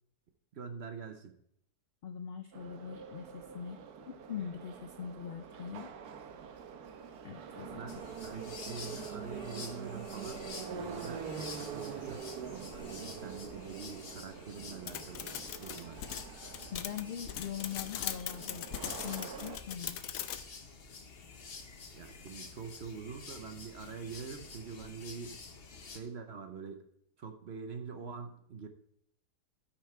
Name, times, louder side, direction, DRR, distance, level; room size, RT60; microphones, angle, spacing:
voice 1, 0.5-1.3 7.7-15.3 15.6-16.0 21.9-25.4 25.9-26.8 27.2-28.7, right 5 dB, 50° right, 7 dB, 0.9 m, -45 dB
voice 2, 2.0-5.9 7.2-7.9 16.7-20.1, left 8 dB, 85° left, 7 dB, 0.5 m, -42 dB
Subway metro underground, 2.5-19.6, right 7 dB, 75° right, 1.3 m, -45 dB
sound 1, 7.9-26.0, left 4 dB, 45° left, 1.1 m, -49 dB
sound 2, 14.9-20.4, left 10 dB, 70° left, 1.0 m, -40 dB
12.5 x 5.8 x 4.4 m, 0.71 s
omnidirectional pair, 1.7 m